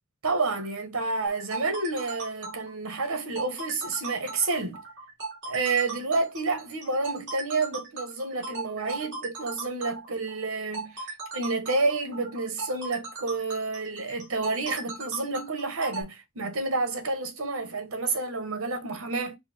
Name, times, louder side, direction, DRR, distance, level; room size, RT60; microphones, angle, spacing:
voice 1, 0.2-4.8 5.5-19.4, right 3 dB, 85° right, 1.3 m, -29 dB
sound 1, 1.3-16.0, right 3 dB, 55° right, 2.1 m, -38 dB
4.2 x 2.2 x 4.3 m
head